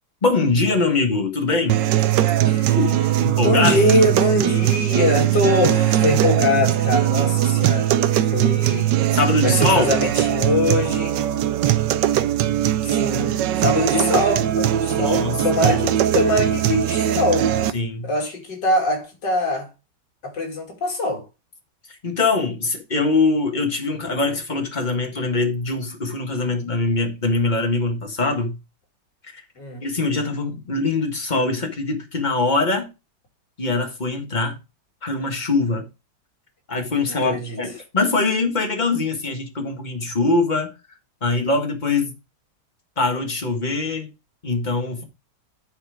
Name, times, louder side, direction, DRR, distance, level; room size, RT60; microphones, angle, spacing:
voice 1, 0.2-1.8 2.7-4.1 9.1-9.9 14.9-15.4 15.7-15.8 17.7-18.1 22.0-28.6 29.8-32.9 33.6-34.6 35.0-35.9 36.7-40.7 41.2-42.2 43.0-44.1 44.4-45.0, left 3 dB, 25° left, 1.6 m, -22 dB
sound 1, 1.7-17.7, right 12 dB, 85° right, 1.3 m, -20 dB
voice 2, 2.4-2.8 3.4-8.0 8.3-9.0 9.4-11.2 12.8-17.5 18.0-19.7 20.2-21.2 29.6-29.8 37.1-37.6, left 2 dB, 80° left, 3.1 m, -23 dB
10.5 x 4.3 x 4.9 m
omnidirectional pair, 1.9 m